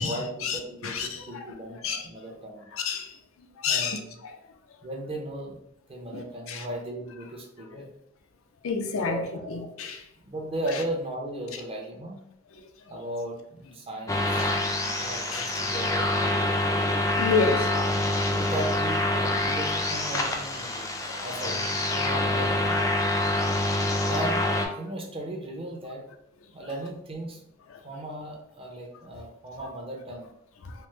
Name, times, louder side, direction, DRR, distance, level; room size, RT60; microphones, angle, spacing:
voice 1, 0.0-2.7 3.7-4.2 4.8-5.6 5.9-7.9 9.0-9.7 10.3-12.2 12.9-14.5 15.0-16.4 17.4-17.8 18.2-20.9 21.2-22.8 23.3-23.4 24.1-24.4 24.7-26.0 26.5-27.4 27.8-30.3, right 1 dB, 30° right, 0.6 m, -36 dB
voice 2, 0.8-1.5 1.8-2.1 2.8-3.1 3.6-4.0 6.1-6.2 6.5-6.6 8.6-9.2 9.5-10.0 14.4-14.9 15.3-15.5 17.2-17.7 19.2-19.4 21.1-21.3 23.5-23.6, left 5 dB, 80° left, 0.4 m, -29 dB
sound 1, 14.1-24.7, left 1 dB, 15° left, 0.4 m, -26 dB
3.3 x 2.0 x 3.1 m
head